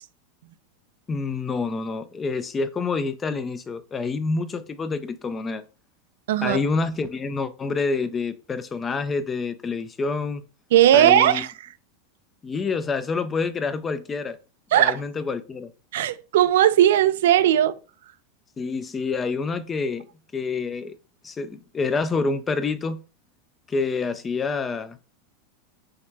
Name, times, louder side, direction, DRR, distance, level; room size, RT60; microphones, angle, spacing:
voice 1, 1.1-5.6 6.4-10.4 10.9-11.4 12.4-14.4 14.7-15.7 18.6-20.1 20.3-21.0 21.2-23.0 23.7-25.0, left 4 dB, 15° left, 0.3 m, -27 dB
voice 2, 6.3-6.6 10.7-11.5 14.7-15.0 15.9-17.8, right 11 dB, 80° right, 0.4 m, -17 dB
5.6 x 2.1 x 3.3 m
supercardioid pair, 150°, 0 cm